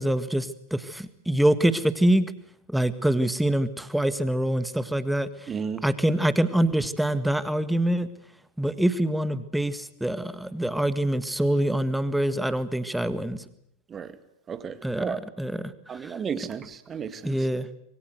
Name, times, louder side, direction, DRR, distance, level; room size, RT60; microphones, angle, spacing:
voice 1, 0.0-2.3 2.7-5.3 5.8-8.1 8.6-13.4 14.8-15.7 16.0-16.1 17.2-17.7, right 1 dB, 5° right, 13 dB, 1.7 m, -25 dB
voice 2, 5.5-5.8 13.9-14.1 14.5-15.2 15.9-17.5, right 6 dB, 20° right, 12 dB, 2.3 m, -33 dB
26.0 x 23.0 x 8.0 m, 0.75 s
figure-of-eight pair, 90°, 0 cm